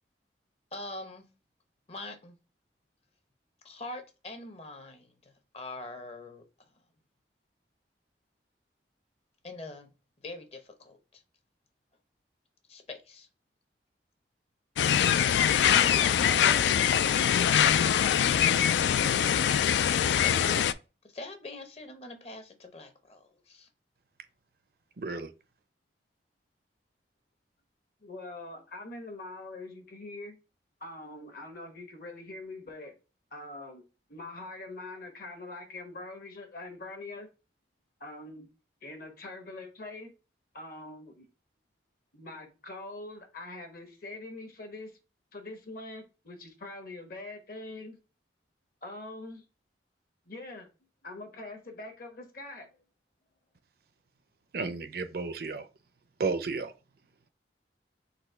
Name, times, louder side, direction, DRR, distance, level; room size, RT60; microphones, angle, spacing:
voice 1, 0.7-1.3 1.9-2.4 3.6-6.4 9.4-9.9 10.2-11.2 12.7-13.3 15.6-17.3 19.8-20.7 21.0-23.7, left 2 dB, 35° left, 0.8 m, -43 dB
sound 1, 14.8-20.7, left 9 dB, 75° left, 0.3 m, -23 dB
voice 2, 25.0-25.3 54.5-55.6 56.2-56.7, right 4 dB, 55° right, 0.5 m, -32 dB
voice 3, 28.0-30.4 30.8-32.9 33.3-33.8 34.1-37.3 38.0-38.5 38.8-40.1 40.5-41.3 42.1-45.0 45.3-48.0 48.8-49.4 50.3-50.7 51.0-52.7, left 2 dB, 55° left, 1.1 m, -43 dB
4.1 x 2.8 x 4.3 m
head